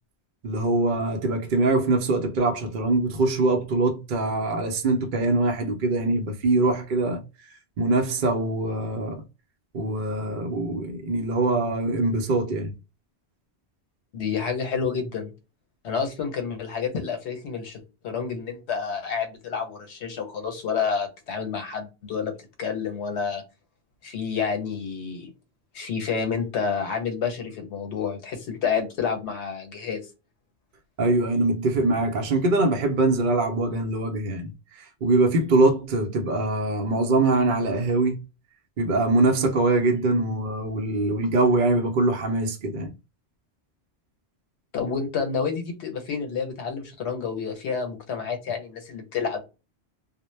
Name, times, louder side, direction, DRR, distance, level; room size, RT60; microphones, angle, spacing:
voice 1, 0.4-7.2 7.8-9.2 9.7-12.7 31.0-38.2 38.8-42.9, right 2 dB, 55° right, 0.6 m, -23 dB
voice 2, 14.1-15.3 15.8-22.3 22.6-23.4 24.0-25.3 25.7-30.1 44.7-49.4, left 6 dB, 80° left, 1.0 m, -29 dB
2.1 x 2.1 x 3.0 m
omnidirectional pair, 1.1 m